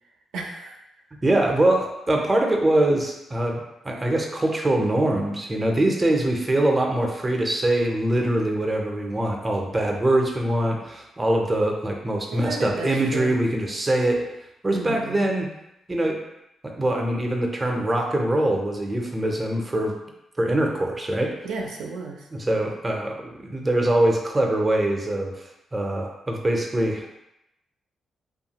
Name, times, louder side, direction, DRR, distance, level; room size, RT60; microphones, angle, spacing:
voice 1, 0.3-0.8 12.3-13.3 14.7-15.3 21.4-22.3, right 3 dB, 85° right, 0 dB, 0.4 m, -33 dB
voice 2, 1.2-14.2 14.6-15.5 15.9-16.2 16.6-19.9 20.4-21.3 22.3-25.4 25.7-27.1, right 1 dB, 20° right, 1 dB, 0.5 m, -23 dB
2.6 x 2.3 x 2.8 m, 0.87 s
cardioid pair, 80°, 0 cm